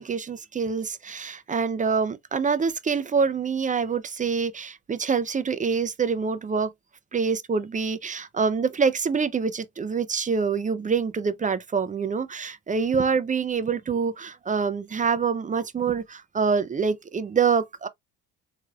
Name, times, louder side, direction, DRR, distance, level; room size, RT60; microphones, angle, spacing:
voice 1, 0.0-6.7 7.1-17.9, right 5 dB, 20° right, 0.4 m, -26 dB
3.6 x 3.3 x 2.2 m
hypercardioid pair, 65°, 43 cm